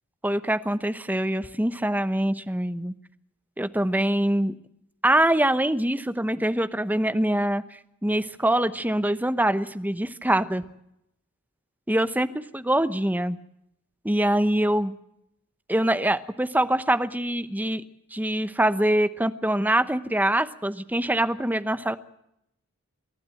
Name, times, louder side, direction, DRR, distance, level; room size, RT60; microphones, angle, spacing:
voice 1, 0.2-2.9 3.6-4.5 5.0-10.6 11.9-12.3 12.5-13.4 14.0-14.9 15.7-17.8 18.1-22.0, right 1 dB, 10° right, 11 dB, 0.9 m, -24 dB
27.5 x 12.5 x 7.7 m, 0.77 s
head